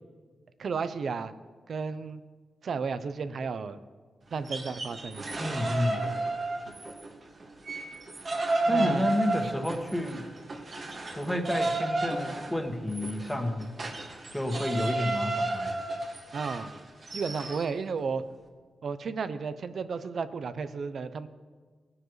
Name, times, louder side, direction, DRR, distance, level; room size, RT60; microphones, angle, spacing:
voice 1, 0.6-1.3 1.7-2.2 2.6-3.8 4.3-5.3 6.7-6.8 8.7-9.1 9.4-9.5 16.3-16.7 17.1-18.2 18.8-21.3, right 5 dB, 65° right, 12 dB, 0.6 m, -33 dB
sound 1, 4.3-7.1 7.4-17.7, right 2 dB, 50° right, 1.8 m, -32 dB
voice 2, 5.4-6.0 8.7-10.3 11.1-13.8 14.3-15.7, left 1 dB, 5° left, 4 dB, 1.5 m, -30 dB
17.5 x 9.7 x 3.2 m, 1.5 s
cardioid pair, 80°, 0 cm